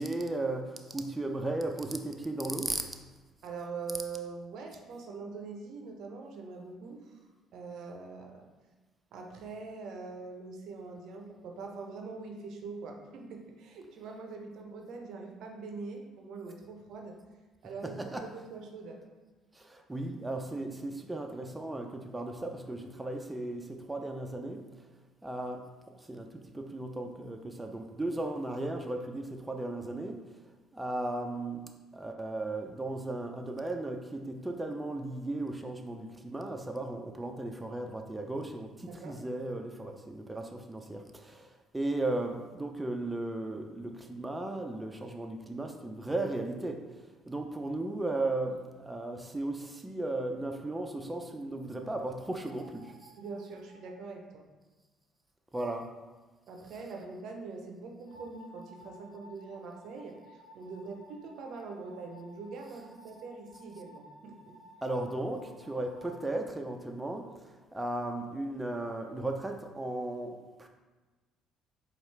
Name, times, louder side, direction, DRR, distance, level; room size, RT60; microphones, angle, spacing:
voice 1, 0.0-2.9 17.8-18.3 19.5-24.9 25.2-25.7 26.0-30.4 30.7-31.6 31.9-53.1 55.5-55.9 64.8-70.7, right 2 dB, 15° right, 3 dB, 0.4 m, -36 dB
voice 2, 3.4-7.2 7.5-8.5 9.1-17.2 17.6-19.0 38.9-39.2 53.2-54.4 56.5-64.6, right 4 dB, 65° right, 3 dB, 0.5 m, -43 dB
sound 1, 52.4-53.9 58.0-66.2, equal, 75° left, 1.2 m, -55 dB
4.5 x 2.3 x 3.2 m, 1.3 s
hypercardioid pair, 60°, 0 cm